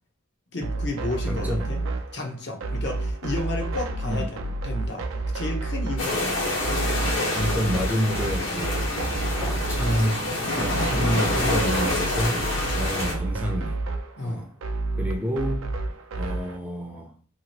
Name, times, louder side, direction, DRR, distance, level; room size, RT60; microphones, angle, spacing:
voice 1, 0.5-1.8 2.1-5.1 5.3-6.8 14.2-14.5, left 2 dB, 55° left, 0.7 m, -32 dB
sound 1, 0.6-16.6, right 2 dB, 80° right, 0.4 m, -30 dB
voice 2, 1.2-1.6 4.0-4.3 7.3-8.9 9.3-12.4 12.7-13.8 14.2-14.5 15.0-15.7 16.2-17.1, equal, 10° right, 0.4 m, -28 dB
sound 2, 6.0-13.1, left 1 dB, 75° left, 1.3 m, -27 dB
2.8 x 2.4 x 2.9 m
head